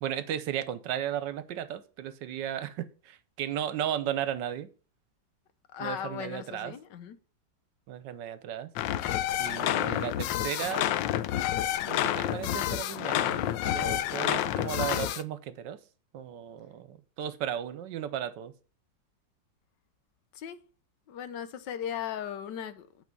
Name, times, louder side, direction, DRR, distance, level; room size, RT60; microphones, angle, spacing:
voice 1, 0.0-4.7 5.8-6.7 7.9-8.7 9.4-11.0 11.9-15.8 16.1-18.5, right 10 dB, 75° right, 1.4 m, -35 dB
voice 2, 5.7-7.2 20.3-20.6 21.1-23.0, left 8 dB, 75° left, 1.4 m, -37 dB
sound 1, 8.8-15.2, left 12 dB, 90° left, 1.3 m, -29 dB
8.5 x 4.9 x 5.3 m
omnidirectional pair, 2.0 m